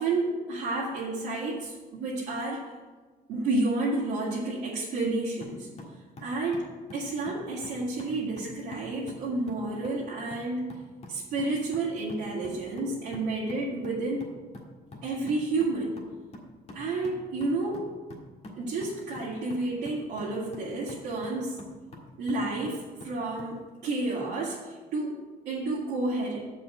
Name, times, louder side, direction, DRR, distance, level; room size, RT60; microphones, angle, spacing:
voice 1, 0.0-2.7 3.3-5.7 6.2-6.6 6.9-10.6 11.1-14.3 15.0-16.0 16.7-17.8 18.6-21.6 22.2-25.2 25.4-26.4, right 2 dB, 80° right, -8 dB, 2.2 m, -30 dB
sound 1, 5.4-23.6, left 1 dB, 40° left, 1.7 m, -47 dB
7.1 x 5.5 x 7.5 m, 1.3 s
cardioid pair, 110°, 17 cm